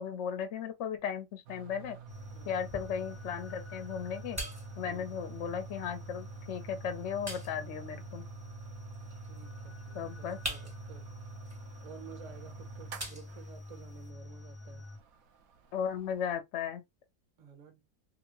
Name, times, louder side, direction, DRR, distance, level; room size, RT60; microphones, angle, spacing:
voice 1, 0.0-2.0 2.4-4.4 4.8-8.3 9.9-10.4 15.7-16.8, left 7 dB, 65° left, 0.7 m, -36 dB
sound 1, 1.5-16.3, right 9 dB, 70° right, 1.0 m, -50 dB
sound 2, 2.1-15.0, left 2 dB, 20° left, 0.4 m, -47 dB
sound 3, 2.1-14.1, equal, 15° right, 0.8 m, -47 dB
voice 2, 2.3-2.7 4.8-5.3 9.1-11.1 11.8-14.9 17.4-17.8, right 7 dB, 40° right, 0.5 m, -53 dB
2.8 x 2.6 x 2.8 m
omnidirectional pair, 1.7 m